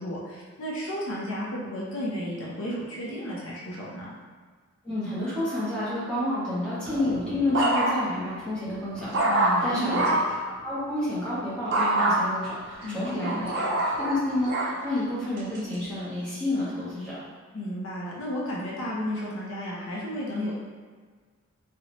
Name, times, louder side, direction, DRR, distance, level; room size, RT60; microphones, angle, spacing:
voice 1, 0.0-4.1 9.3-10.2 12.8-13.4 17.5-20.6, equal, 65° left, -5 dB, 0.5 m, -33 dB
voice 2, 4.8-10.0 10.6-13.5 14.0-17.2, left 1 dB, 5° left, -11 dB, 0.7 m, -29 dB
sound 1, 6.9-8.2 8.7-10.3 11.7-12.2 12.8-14.7 15.4-15.8, right 1 dB, 55° right, 0.4 m, -25 dB
2.7 x 2.1 x 2.8 m, 1.5 s
head